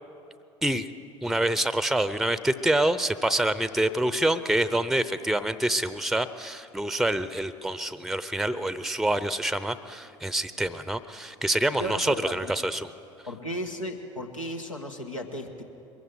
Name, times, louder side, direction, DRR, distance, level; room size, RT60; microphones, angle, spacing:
voice 1, 1.2-12.9, right 1 dB, ahead, 14 dB, 0.7 m, -26 dB
voice 2, 11.8-12.5 13.3-15.6, equal, 90° left, 2 dB, 1.5 m, -35 dB
23.0 x 15.0 x 7.8 m, 2.7 s
figure-of-eight pair, 65°, 16 cm